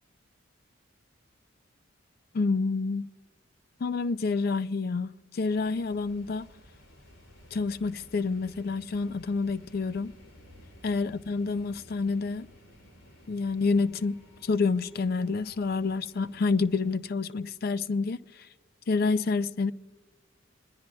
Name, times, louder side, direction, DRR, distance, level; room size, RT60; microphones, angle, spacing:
voice 1, 2.3-3.1 3.8-6.5 7.5-10.1 10.8-12.5 13.3-18.5 18.9-19.7, left 4 dB, 50° left, 0.4 m, -28 dB
sound 1, 5.4-17.0, equal, 85° left, 3.5 m, -55 dB
27.0 x 21.0 x 2.3 m
head